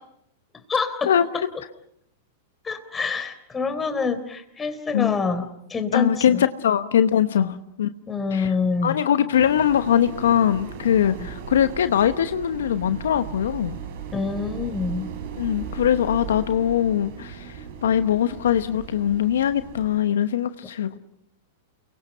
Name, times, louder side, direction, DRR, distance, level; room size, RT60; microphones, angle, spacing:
voice 1, 0.5-1.4 2.6-6.4 7.4-7.6 8.1-9.0 11.2-11.3 14.1-15.1 20.9-21.0, left 4 dB, 20° left, 3.7 m, -27 dB
voice 2, 5.9-7.9 8.3-8.5 8.8-13.8 15.4-21.0, left 9 dB, 75° left, 1.0 m, -22 dB
sound 1, 9.3-20.0, right 7 dB, 60° right, 4.9 m, -37 dB
29.5 x 23.5 x 5.6 m
hypercardioid pair, 105°, 0 cm